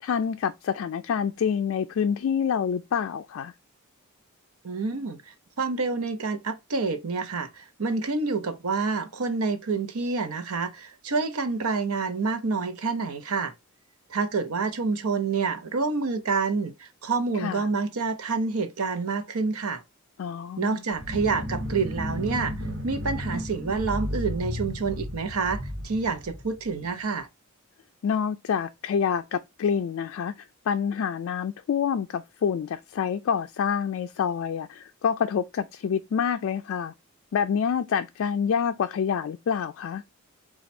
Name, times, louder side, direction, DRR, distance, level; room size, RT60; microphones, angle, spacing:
voice 1, 0.0-3.5 17.3-17.6 20.2-20.8 28.0-30.3 30.7-36.9 37.3-40.0, left 7 dB, 60° left, 0.3 m, -27 dB
voice 2, 4.6-13.5 14.1-19.8 20.6-22.5 22.8-27.3, right 4 dB, 80° right, 0.7 m, -28 dB
sound 1, 20.9-26.9, left 1 dB, 60° right, 1.2 m, -33 dB
4.3 x 2.4 x 4.1 m
head